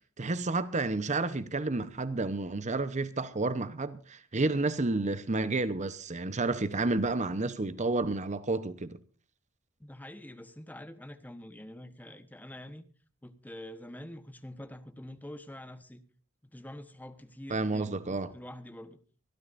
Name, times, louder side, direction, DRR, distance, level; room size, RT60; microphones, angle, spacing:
voice 1, 0.2-9.0 17.5-18.3, right 3 dB, 35° right, 0.9 m, -30 dB
voice 2, 9.8-12.8 13.2-16.0 16.4-19.0, left 1 dB, 10° left, 1.1 m, -46 dB
25.0 x 13.0 x 2.6 m
head